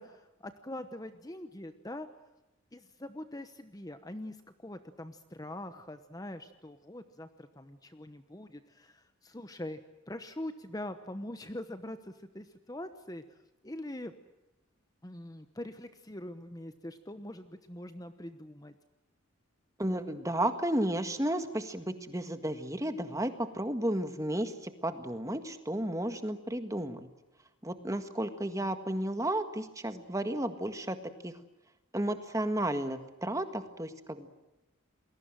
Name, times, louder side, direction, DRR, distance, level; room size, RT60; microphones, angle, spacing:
voice 1, 0.0-2.1 2.7-9.8 10.1-13.4 13.6-14.1 15.0-18.7, left 1 dB, 15° left, 10 dB, 1.0 m, -43 dB
voice 2, 19.8-27.1 27.6-31.0 31.2-31.3 31.9-34.3, right 1 dB, 15° right, 9 dB, 1.7 m, -33 dB
29.0 x 21.5 x 7.7 m, 1.0 s
head